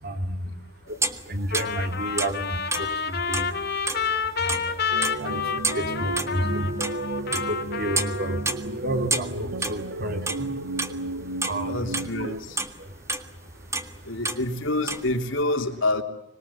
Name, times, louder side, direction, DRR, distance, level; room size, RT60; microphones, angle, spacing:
voice 1, 0.0-0.5 0.9-1.0 1.3-3.5 4.4-4.8 5.2-5.4 5.7-6.7 7.3-10.5 11.5-11.9 12.8-12.9, right 1 dB, 55° right, 6 dB, 3.9 m, -31 dB
sound 1, 1.0-4.7 5.0-6.4 6.8-7.7 8.0-8.2 8.5-11.0 11.2-12.2 12.6-13.3 13.7-13.9 14.3-14.4 14.7-15.1, right 2 dB, 15° right, 1.7 m, -29 dB
Trumpet, 1.5-8.5, left 6 dB, 55° left, 3.6 m, -29 dB
sound 2, 4.9-12.4, right 2 dB, 75° right, 1.8 m, -33 dB
voice 2, 11.6-12.6 14.0-16.0, left 2 dB, 85° left, 5 dB, 3.1 m, -27 dB
25.5 x 21.5 x 8.8 m, 0.80 s
head